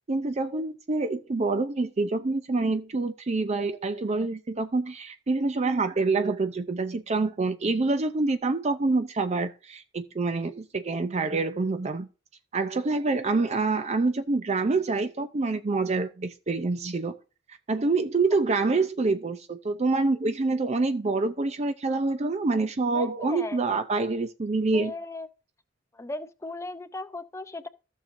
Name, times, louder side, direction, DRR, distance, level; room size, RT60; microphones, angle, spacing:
voice 1, 0.1-12.1 12.5-17.2 17.7-24.9, right 3 dB, 35° right, 0.5 m, -26 dB
voice 2, 22.9-23.6 24.7-25.3 26.0-27.7, left 2 dB, 15° left, 0.6 m, -37 dB
15.0 x 6.6 x 2.6 m
head